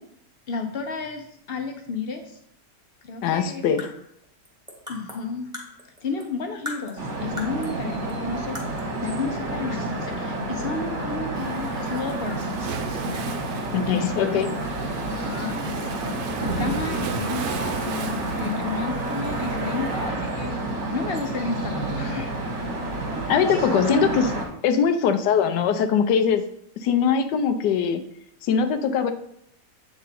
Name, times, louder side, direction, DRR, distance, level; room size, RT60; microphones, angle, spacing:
voice 1, 0.5-2.4 3.0-3.6 4.9-5.5 6.0-12.5 13.1-14.3 15.1-20.5 20.9-22.3 23.1-23.7, left 4 dB, 60° left, 5 dB, 0.6 m, -32 dB
voice 2, 3.2-3.9 13.7-14.6 23.3-24.3 24.6-26.4 26.8-28.0 28.4-29.1, left 7 dB, 90° left, 8 dB, 1.2 m, -21 dB
sound 1, 3.8-6.3 6.6-7.8 8.1-8.2 8.5-9.0, left 2 dB, 5° right, 1.1 m, -39 dB
sound 2, 7.0-24.5, right 2 dB, 45° right, 1.4 m, -29 dB
Waves surf, 11.4-20.1, right 7 dB, 75° right, 1.2 m, -37 dB
7.9 x 3.7 x 4.1 m, 0.69 s
omnidirectional pair, 1.8 m